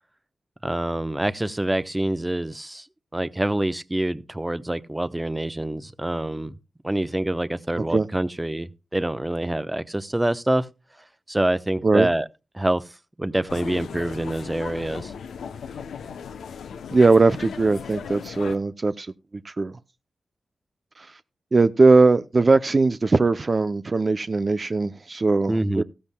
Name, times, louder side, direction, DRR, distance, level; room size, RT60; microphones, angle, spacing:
voice 1, 0.6-2.8 3.1-6.5 6.8-10.7 11.3-12.3 12.5-12.8 13.2-15.1 25.5-25.8, right 1 dB, 20° right, 0.9 m, -26 dB
sound 1, 13.5-18.6, left 6 dB, 90° left, 0.7 m, -37 dB
voice 2, 16.9-19.1 19.4-19.7 21.0-21.1 21.5-25.8, right 3 dB, 50° right, 0.6 m, -19 dB
15.0 x 14.0 x 2.2 m
cardioid pair, 40°, 0 cm